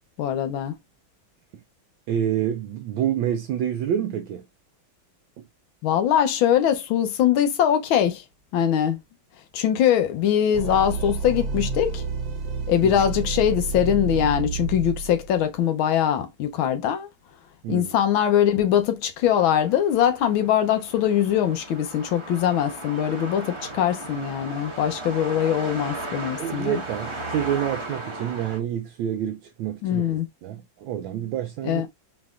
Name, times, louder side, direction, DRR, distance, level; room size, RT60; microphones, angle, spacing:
voice 1, 0.2-0.8 5.8-8.2 8.5-9.0 9.5-12.0 12.7-17.1 17.7-26.8 29.8-30.3 31.6-31.9, left 10 dB, 75° left, 1.6 m, -22 dB
voice 2, 2.1-4.4 5.4-5.5 12.8-13.0 17.6-17.9 26.4-30.0 30.4-31.9, right 10 dB, 75° right, 1.3 m, -28 dB
sound 1, 10.5-15.5, right 4 dB, 55° right, 1.3 m, -30 dB
sound 2, 19.2-28.6, right 2 dB, 25° right, 0.7 m, -36 dB
4.0 x 3.8 x 2.4 m
omnidirectional pair, 2.3 m